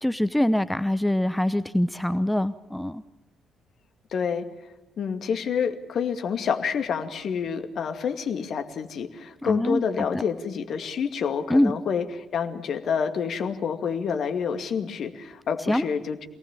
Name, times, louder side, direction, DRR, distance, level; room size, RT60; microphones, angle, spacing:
voice 1, 0.0-3.0 9.4-9.8 11.5-11.8 15.7-15.8, left 1 dB, 5° left, 14 dB, 0.9 m, -24 dB
voice 2, 4.1-4.5 5.0-16.3, left 6 dB, 55° left, 7 dB, 2.3 m, -28 dB
27.0 x 18.5 x 7.4 m, 0.97 s
figure-of-eight pair, 45°, 0 cm